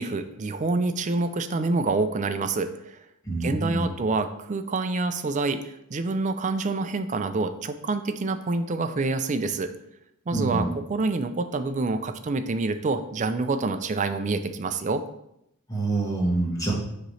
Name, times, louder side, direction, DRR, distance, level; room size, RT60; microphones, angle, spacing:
voice 1, 0.0-3.0 3.4-9.7 10.3-15.0, right 3 dB, 35° right, 9 dB, 0.4 m, -27 dB
voice 2, 3.3-3.8 10.3-10.7 15.7-16.7, right 2 dB, 15° left, -3 dB, 1.5 m, -26 dB
6.5 x 3.1 x 5.6 m, 0.80 s
head